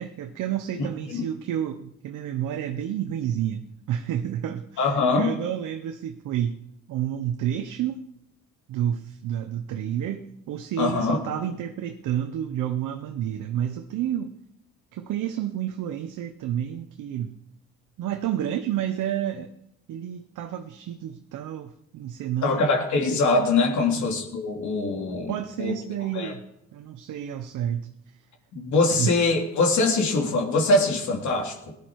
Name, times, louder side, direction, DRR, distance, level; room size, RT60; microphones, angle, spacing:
voice 1, 0.0-6.6 6.9-8.0 8.7-14.4 14.9-17.4 18.0-19.5 19.9-22.7 23.8-24.0 25.3-26.4 26.7-28.2 28.9-29.1, right 10 dB, 85° right, 6 dB, 1.0 m, -30 dB
voice 2, 4.8-5.3 10.8-11.2 22.4-25.3 25.6-25.7 26.1-26.3 28.5-31.7, left 3 dB, 70° left, 1 dB, 3.2 m, -23 dB
18.0 x 11.0 x 4.7 m, 0.80 s
cardioid pair, 90°, 30 cm